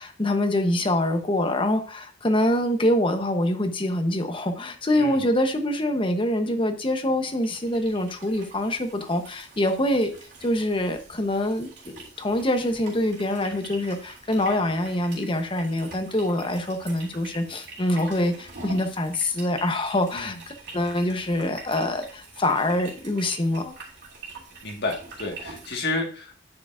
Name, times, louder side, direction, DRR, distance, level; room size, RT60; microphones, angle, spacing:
voice 1, 0.0-10.1 10.4-23.7, left 1 dB, 30° left, 7 dB, 0.9 m, -25 dB
voice 2, 4.9-5.3 20.1-20.4 24.6-26.4, left 2 dB, 60° left, 2 dB, 1.6 m, -31 dB
sound 1, 7.3-25.7, right 3 dB, 65° right, 3.0 m, -45 dB
9.6 x 6.5 x 2.5 m, 0.39 s
head